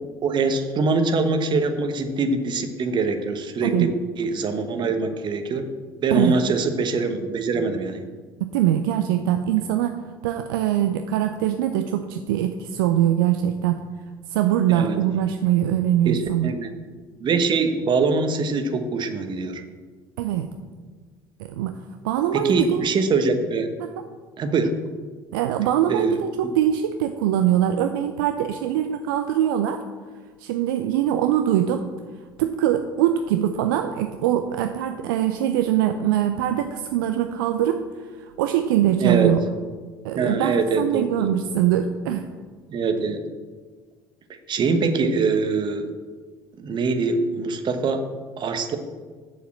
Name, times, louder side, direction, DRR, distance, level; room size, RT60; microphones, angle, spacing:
voice 1, 0.2-3.9 4.2-5.6 6.0-8.0 14.7-15.0 16.0-16.7 17.2-19.6 22.3-23.7 24.4-24.7 25.9-26.2 26.4-26.5 39.0-39.3 40.2-41.4 42.7-43.2 44.5-45.9 46.6-48.0 48.4-48.8, right 4 dB, 40° right, 8 dB, 1.2 m, -23 dB
voice 2, 8.4-9.9 10.2-13.8 14.3-16.5 20.2-20.5 21.5-21.8 22.0-22.8 23.8-23.9 25.3-29.8 30.4-31.8 32.4-37.8 38.2-39.4 40.0-42.2, right 11 dB, 70° right, 7 dB, 0.5 m, -22 dB
7.2 x 6.9 x 7.4 m, 1.5 s
figure-of-eight pair, 60°, 12 cm